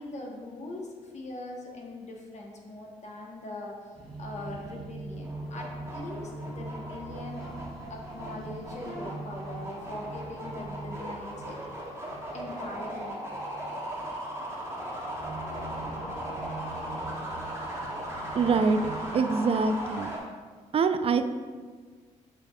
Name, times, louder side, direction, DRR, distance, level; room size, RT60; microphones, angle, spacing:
voice 1, 0.0-7.5 7.9-11.6 12.3-13.2, left 2 dB, 45° left, 0 dB, 1.1 m, -41 dB
sound 1, 3.9-19.1, right 2 dB, 5° left, 1.1 m, -43 dB
sound 2, 5.2-20.2, right 1 dB, 15° right, 1.5 m, -38 dB
voice 2, 18.3-18.8 19.1-20.1 20.7-21.2, right 5 dB, 40° right, 9 dB, 0.4 m, -24 dB
6.7 x 3.4 x 2.3 m, 1.5 s
supercardioid pair, 55°, 16 cm